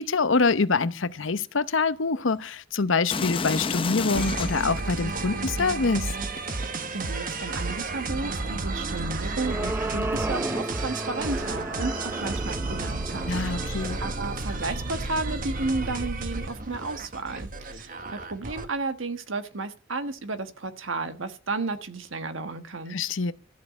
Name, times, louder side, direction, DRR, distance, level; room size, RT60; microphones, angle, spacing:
voice 1, 0.0-6.1 13.3-14.0 22.9-23.3, left 4 dB, 70° left, 0.8 m, -25 dB
sound 1, 3.1-4.8 5.5-6.9 7.7-7.8, left 4 dB, 25° left, 0.6 m, -30 dB
sound 2, 4.1-18.7, right 3 dB, 45° right, 1.2 m, -32 dB
voice 2, 6.9-13.7 14.0-23.0, right 3 dB, 75° right, 1.4 m, -33 dB
sound 3, 8.8-15.3, right 2 dB, 10° right, 0.6 m, -34 dB
13.5 x 6.5 x 8.1 m
head